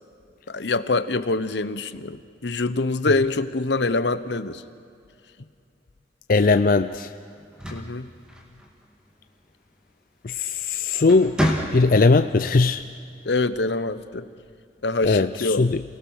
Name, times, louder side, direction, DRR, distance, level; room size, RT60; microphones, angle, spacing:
voice 1, 0.5-4.6 7.7-8.1 13.3-14.2 14.8-15.7, left 3 dB, 75° left, 13 dB, 0.9 m, -25 dB
voice 2, 6.3-7.1 10.2-11.4 11.7-12.8 15.0-15.8, left 3 dB, 50° left, 9 dB, 0.5 m, -19 dB
sound 1, 7.4-8.9 10.4-10.6 11.0-12.2, equal, 5° right, 2.4 m, -28 dB
28.5 x 18.5 x 6.4 m, 2.5 s
head